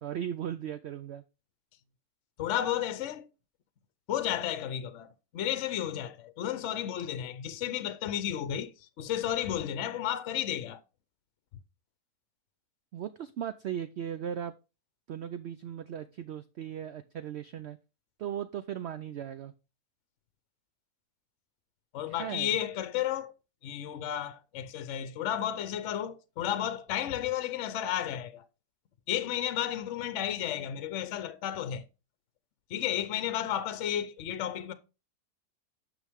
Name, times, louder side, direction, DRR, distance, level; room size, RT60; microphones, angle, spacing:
voice 1, 0.0-1.2 12.9-14.5 15.1-17.8 18.2-19.5 22.1-22.6, right 9 dB, 90° right, 0.5 m, -37 dB
voice 2, 2.4-3.3 4.1-10.8 21.9-23.3 23.6-28.4 29.1-31.8 32.7-34.7, left 11 dB, 55° left, 0.9 m, -33 dB
9.5 x 6.0 x 3.5 m
omnidirectional pair, 1.7 m